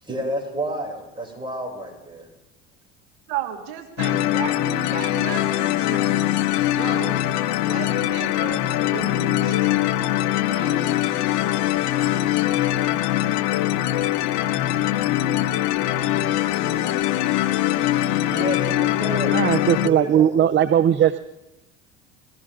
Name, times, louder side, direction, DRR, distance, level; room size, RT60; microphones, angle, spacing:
voice 1, 0.0-2.3 18.2-20.5, right 1 dB, 15° right, -1 dB, 7.0 m, -30 dB
voice 2, 3.3-6.3 6.7-7.3 7.6-9.9 10.5-10.9 16.4-17.1, right 10 dB, 90° right, 5 dB, 1.8 m, -35 dB
sound 1, 4.0-19.9, left 13 dB, 65° left, 0.9 m, -22 dB
voice 3, 19.3-21.2, right 10 dB, 35° right, 13 dB, 0.6 m, -18 dB
22.0 x 16.5 x 3.8 m, 0.96 s
supercardioid pair, 105°, 31 cm